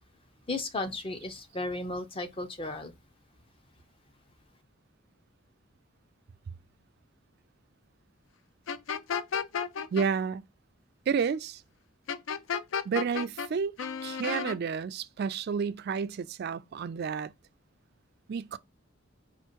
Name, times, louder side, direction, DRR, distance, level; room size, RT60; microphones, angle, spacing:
voice 1, 0.5-2.9, left 2 dB, 25° left, 0.6 m, -34 dB
sound 1, 8.7-10.1 12.1-13.5 13.8-14.6, left 6 dB, 65° left, 0.4 m, -32 dB
voice 2, 9.9-10.4 11.1-11.6 12.8-13.7 14.0-17.3 18.3-18.6, right 6 dB, 50° right, 0.3 m, -30 dB
4.4 x 2.5 x 4.5 m
head